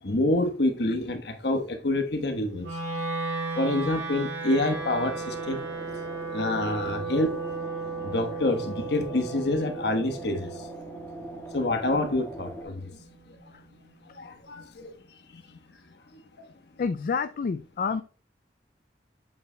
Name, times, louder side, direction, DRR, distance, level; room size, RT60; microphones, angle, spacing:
voice 1, 0.0-2.7 3.6-5.6 6.3-7.5 8.0-10.7 11.5-13.0 13.4-13.5 14.1-14.9 15.3-15.6 16.1-16.5, left 2 dB, 65° left, 1.2 m, -27 dB
Wind instrument woodwind instrument, 2.6-12.8, right 4 dB, 75° right, 2.7 m, -35 dB
sound 1, 4.5-12.6, right 1 dB, 15° left, 1.3 m, -42 dB
voice 2, 16.8-18.0, left 5 dB, 50° left, 0.3 m, -28 dB
8.2 x 7.5 x 2.2 m
head